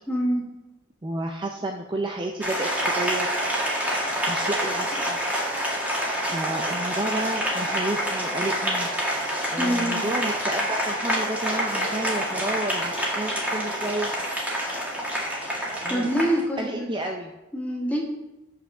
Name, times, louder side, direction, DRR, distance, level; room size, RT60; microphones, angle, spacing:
voice 1, 0.1-0.4 9.6-10.0 15.9-16.9 17.5-18.0, equal, 10° left, -3 dB, 1.9 m, -25 dB
voice 2, 1.0-3.4 4.3-5.2 6.2-8.9 9.5-14.1 15.8-16.1 16.6-17.3, right 2 dB, 25° right, 2 dB, 0.5 m, -31 dB
Applause, 2.4-16.4, equal, 5° right, 1.7 m, -27 dB
6.1 x 5.9 x 6.7 m, 0.97 s
head